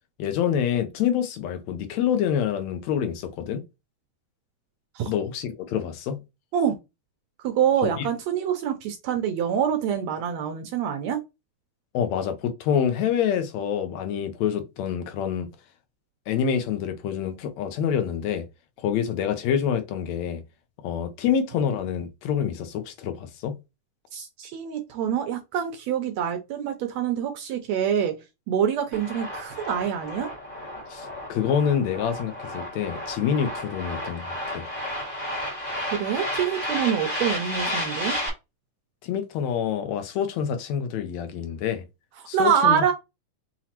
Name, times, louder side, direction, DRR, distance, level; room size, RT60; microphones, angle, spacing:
voice 1, 0.2-3.6 5.0-6.2 7.8-8.1 11.9-15.5 16.3-18.5 18.8-20.4 20.8-23.6 30.9-34.7 39.0-41.8 42.3-42.8, left 8 dB, 75° left, 1.8 m, -27 dB
voice 2, 7.4-11.2 24.1-28.1 28.5-30.3 35.9-38.2 42.3-42.9, right 8 dB, 75° right, 1.7 m, -25 dB
sound 1, 28.9-38.3, equal, 30° left, 2.1 m, -32 dB
5.7 x 3.0 x 2.9 m
omnidirectional pair, 3.6 m